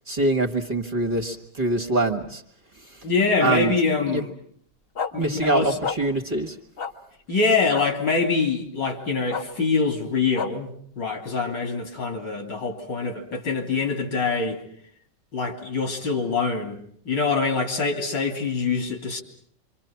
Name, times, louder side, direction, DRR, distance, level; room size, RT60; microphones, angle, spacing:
voice 1, 0.1-2.4 2.8-3.1 3.4-3.8 4.1-4.2 5.2-6.6, right 2 dB, 30° right, 3 dB, 1.7 m, -24 dB
voice 2, 3.0-4.3 5.1-5.8 7.3-10.7 11.0-14.6 15.3-16.8 17.1-19.2, left 4 dB, 80° left, 4 dB, 3.6 m, -24 dB
sound 1, 5.0-5.1 5.8-6.0 6.8-6.9 7.7-7.9 9.3-9.4 10.3-10.5, left 6 dB, 35° left, 1.2 m, -28 dB
27.5 x 25.0 x 5.8 m, 0.63 s
omnidirectional pair, 1.9 m